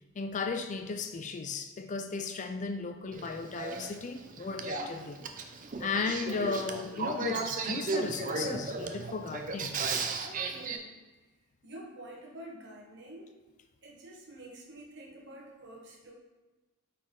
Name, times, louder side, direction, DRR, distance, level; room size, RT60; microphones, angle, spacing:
voice 1, 0.2-5.2 5.8-9.7, left 4 dB, 35° left, 6 dB, 0.4 m, -35 dB
Male speech man speaking / Female speech woman speaking / Conversation, 3.1-10.8, right 4 dB, 35° right, 0.5 m, -35 dB
voice 2, 10.5-11.0 11.6-13.3 13.8-16.1, right 1 dB, 55° right, -1 dB, 1.3 m, -48 dB
8.7 x 4.2 x 3.7 m, 1.2 s
head